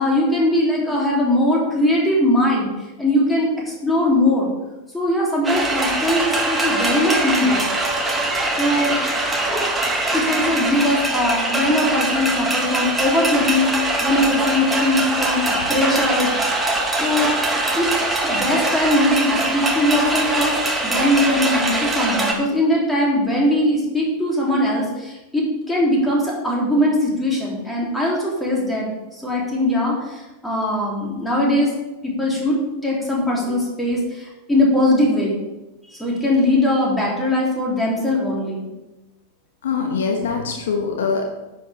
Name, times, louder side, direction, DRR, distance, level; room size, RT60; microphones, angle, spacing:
voice 1, 0.0-2.7 3.0-4.5 4.9-7.6 8.6-8.9 10.1-16.3 17.0-17.4 17.8-31.7 32.0-35.3 35.9-38.6, left 1 dB, 5° left, -4 dB, 3.1 m, -20 dB
sound 1, 5.4-22.3, right 2 dB, 10° right, 1.5 m, -22 dB
voice 2, 39.6-41.3, left 5 dB, 60° left, 2 dB, 1.2 m, -23 dB
10.0 x 7.7 x 3.5 m, 1.0 s
figure-of-eight pair, 90°, 0 cm